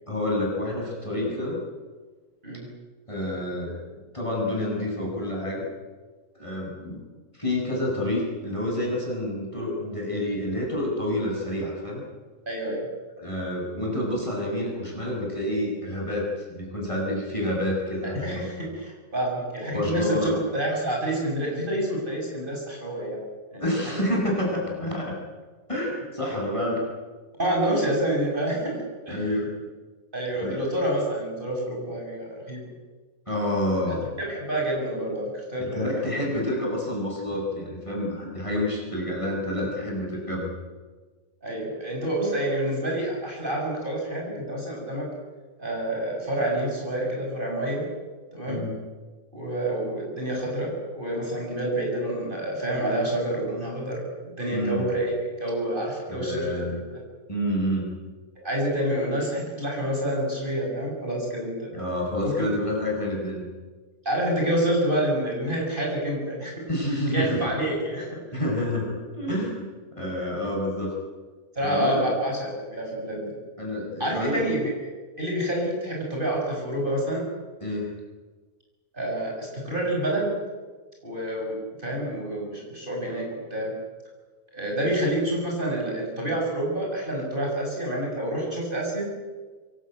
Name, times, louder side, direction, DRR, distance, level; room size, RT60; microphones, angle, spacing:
voice 1, 0.1-1.6 3.1-3.8 4.1-5.6 6.3-7.0 7.3-12.0 13.2-18.5 19.7-20.4 23.6-25.1 25.7-26.8 29.1-29.5 30.4-30.6 33.3-34.1 35.6-40.5 48.5-48.7 54.5-54.8 56.1-56.8 57.3-57.9 61.7-63.4 66.7-67.5 68.3-69.7 70.0-70.9 71.6-72.1 73.6-74.4 77.6-77.9, left 1 dB, 20° left, -3 dB, 7.6 m, -28 dB
voice 2, 12.5-12.9 18.1-23.2 23.5-24.0 27.4-29.3 30.1-32.6 33.9-36.0 41.4-45.1 45.6-47.9 48.3-48.6 49.3-57.0 58.4-61.7 62.2-62.3 64.0-66.5 67.1-68.2 71.6-73.4 74.0-74.7 75.2-77.3 78.9-80.4 81.0-83.7 84.5-89.1, right 1 dB, 30° right, -1 dB, 7.4 m, -28 dB
25.5 x 22.5 x 9.4 m, 1.4 s
omnidirectional pair, 1.7 m